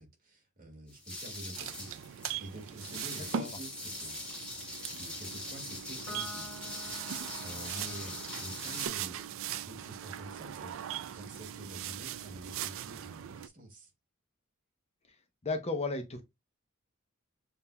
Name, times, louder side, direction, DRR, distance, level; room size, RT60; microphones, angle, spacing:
voice 1, 0.0-4.4 4.7-6.6 7.4-10.8 11.1-13.9, right 1 dB, 40° right, 1.9 m, -48 dB
sound 1, 0.9-8.9, left 2 dB, 5° left, 1.3 m, -43 dB
sound 2, 1.5-13.5, right 9 dB, 65° right, 0.4 m, -41 dB
voice 2, 3.1-3.6 15.4-16.2, left 3 dB, 30° left, 0.8 m, -34 dB
Piano, 6.1-12.8, left 1 dB, 70° left, 0.8 m, -52 dB
7.2 x 2.7 x 2.3 m
head